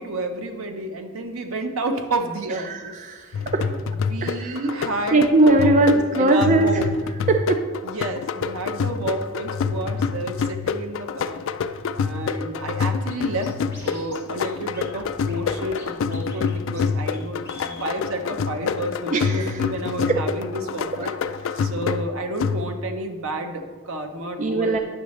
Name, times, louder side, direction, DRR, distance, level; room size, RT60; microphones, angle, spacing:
voice 1, 0.0-2.9 3.3-3.5 4.1-6.9 7.8-13.5 13.8-17.4 17.8-21.1 21.6-24.7, right 1 dB, 75° right, 5 dB, 0.8 m, -30 dB
voice 2, 2.6-3.6 4.2-4.6 5.1-6.8 7.3-7.6 19.1-19.6 20.1-20.2 21.0-21.1 21.4-21.7 24.4-24.8, right 2 dB, 35° right, 4 dB, 0.4 m, -20 dB
sound 1, 3.3-23.0, left 5 dB, 65° left, 0.3 m, -27 dB
Scratching (performance technique), 13.1-13.2 13.4-14.2 14.4-14.5 14.7-15.9 16.1-16.5 16.8-16.9 17.1-17.2 17.4-17.9, equal, 10° right, 2.2 m, -42 dB
9.9 x 6.0 x 3.2 m, 1.5 s
head